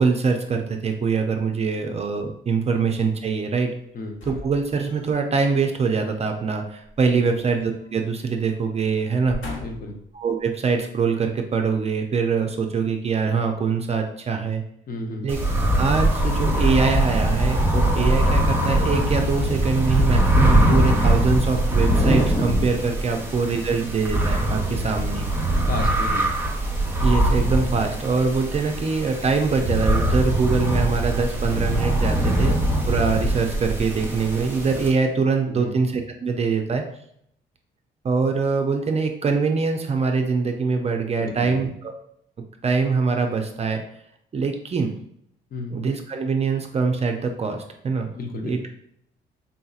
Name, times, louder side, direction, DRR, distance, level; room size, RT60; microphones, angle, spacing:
voice 1, 0.0-3.7 4.3-9.4 10.1-14.6 15.2-15.4 15.8-25.2 27.0-36.8 38.0-41.9 42.6-43.8 44.3-44.9 45.7-48.1 48.4-48.7, right 4 dB, 30° right, 4 dB, 0.4 m, -23 dB
sound 1, 4.1-5.3 6.8-8.0 8.3-8.5 9.1-10.0 10.7-10.8, left 2 dB, 70° left, 1.1 m, -38 dB
voice 2, 9.6-10.0 14.9-15.3 23.1-23.2 24.7-24.9 25.6-26.2 32.2-32.6 35.5-35.8 41.2-41.6 45.5-45.8 48.1-48.6, left 2 dB, 45° left, 3 dB, 0.7 m, -33 dB
sound 2, 15.3-34.9, right 1 dB, 10° right, 0.8 m, -22 dB
3.8 x 2.7 x 2.4 m, 0.71 s
cardioid pair, 90°, 20 cm